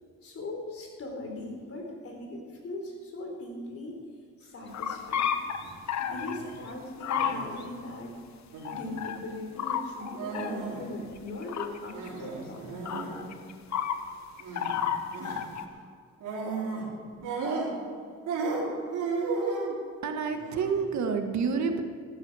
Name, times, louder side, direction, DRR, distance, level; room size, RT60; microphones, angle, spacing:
voice 1, 0.2-4.0 4.4-5.3 6.0-8.2 8.7-12.6, left 2 dB, 50° left, 1 dB, 4.2 m, -39 dB
sound 1, 4.7-6.4 7.0-7.6 8.6-9.2 9.6-10.5 11.2-12.1 12.9-14.0 14.4-15.6, left 8 dB, 65° left, 1.2 m, -31 dB
sound 2, 5.5-5.7 6.1-6.5 7.2-7.6 8.5-8.9 10.2-10.9 11.1-11.2 11.9-13.2 14.4-14.8 15.1-15.4 16.2-16.9 17.2-18.0 18.3-19.7 20.3-20.8, right 4 dB, 85° right, 4.5 m, -34 dB
voice 2, 20.0-21.8, right 5 dB, 65° right, 6 dB, 1.6 m, -28 dB
15.0 x 13.0 x 4.9 m, 2.1 s
cardioid pair, 90°, 30 cm